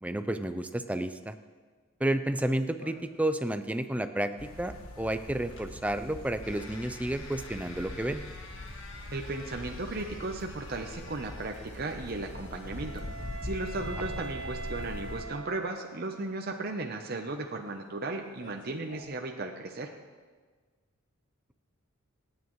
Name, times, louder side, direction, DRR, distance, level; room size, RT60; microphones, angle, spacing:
voice 1, 0.0-1.4 2.0-8.2, right 1 dB, 5° right, 9 dB, 0.4 m, -31 dB
sound 1, 2.8-19.0, left 3 dB, 60° left, 1.7 m, -52 dB
sound 2, 4.4-15.2, left 1 dB, 85° left, 1.4 m, -42 dB
voice 2, 9.1-13.0 13.4-19.9, right 2 dB, 45° right, 3 dB, 0.8 m, -36 dB
Wind instrument woodwind instrument, 12.0-16.2, right 3 dB, 30° right, 1.5 m, -44 dB
26.0 x 9.5 x 3.1 m, 1.5 s
head